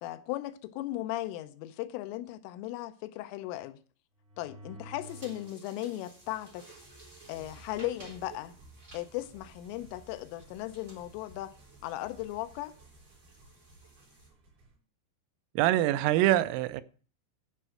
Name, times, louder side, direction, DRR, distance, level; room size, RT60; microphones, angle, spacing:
voice 1, 0.0-3.8 4.4-6.7 7.3-8.6 8.9-11.5 11.8-12.7, left 15 dB, 80° left, 3.2 m, -37 dB
sound 1, 4.2-5.6 6.2-14.7, right 1 dB, 50° right, 6.6 m, -54 dB
sound 2, 5.0-14.3, right 3 dB, 15° right, 3.3 m, -55 dB
voice 2, 15.6-16.8, right 14 dB, 85° right, 3.3 m, -24 dB
13.0 x 5.4 x 7.6 m
omnidirectional pair, 5.8 m